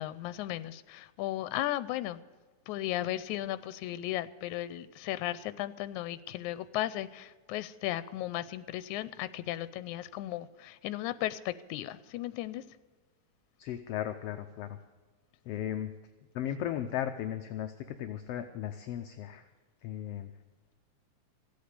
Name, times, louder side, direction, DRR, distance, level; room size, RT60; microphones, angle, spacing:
voice 1, 0.0-2.2 2.7-12.6, left 14 dB, 90° left, 15 dB, 2.0 m, -35 dB
voice 2, 13.6-14.8 15.4-15.9 16.3-19.5 19.8-20.3, left 11 dB, 75° left, 7 dB, 1.5 m, -36 dB
15.5 x 8.5 x 8.2 m, 1.4 s
omnidirectional pair, 3.4 m